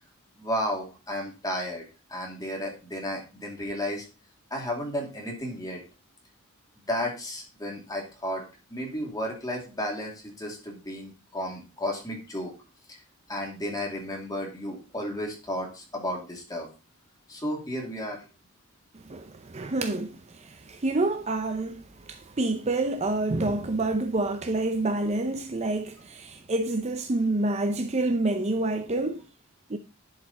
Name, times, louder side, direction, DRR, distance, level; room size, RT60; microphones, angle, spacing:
voice 1, 0.4-1.8 2.1-4.0 4.5-5.8 6.9-8.4 8.7-12.5 12.9-13.0 13.3-16.7 17.3-18.2, equal, 15° left, 2.7 m, -33 dB
voice 2, 19.0-29.2 29.7-29.8, right 2 dB, 30° right, 0.6 m, -28 dB
11.0 x 5.0 x 4.2 m
head